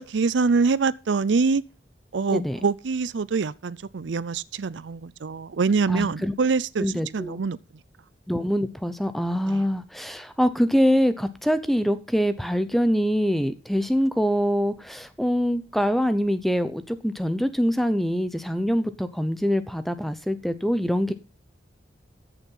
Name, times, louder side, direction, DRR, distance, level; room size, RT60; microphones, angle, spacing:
voice 1, 0.0-1.6 2.1-7.6 9.5-9.7, right 4 dB, 75° right, 0.5 m, -25 dB
voice 2, 5.9-6.3 6.8-7.4 8.3-21.1, equal, ahead, 0.8 m, -24 dB
14.0 x 7.0 x 5.6 m
head